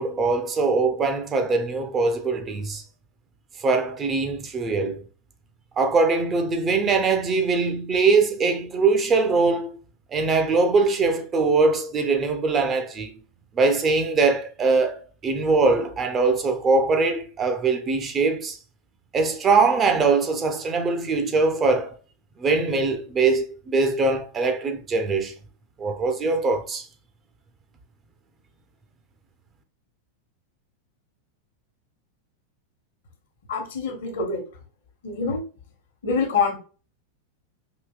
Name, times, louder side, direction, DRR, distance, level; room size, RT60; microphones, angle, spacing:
voice 1, 0.0-2.8 3.6-5.0 5.8-9.7 10.1-13.1 13.5-18.6 19.1-21.9 22.4-25.3 25.8-26.9, right 4 dB, 25° right, 0.7 m, -22 dB
voice 2, 33.5-34.4 35.0-35.4 36.0-36.6, left 4 dB, 60° left, 1.2 m, -25 dB
5.0 x 2.9 x 2.3 m
figure-of-eight pair, 90°, 0 cm